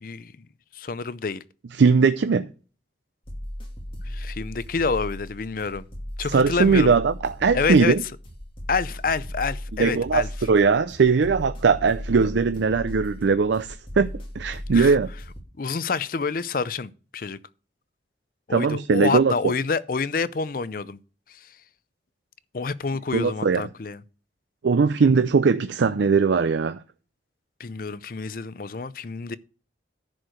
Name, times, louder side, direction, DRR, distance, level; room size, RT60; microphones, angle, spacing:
voice 1, 0.0-0.3 0.7-1.4 4.1-5.9 6.2-6.9 7.5-7.9 8.7-10.3 14.7-14.9 15.6-17.4 18.5-21.0 22.5-24.0 27.6-29.4, left 4 dB, 50° left, 0.5 m, -28 dB
voice 2, 1.8-2.5 6.3-8.0 9.8-15.1 18.5-19.5 23.1-23.7 24.6-26.8, right 5 dB, 80° right, 0.5 m, -20 dB
sound 1, 3.2-15.4, equal, 30° left, 2.1 m, -36 dB
10.5 x 4.7 x 6.3 m
head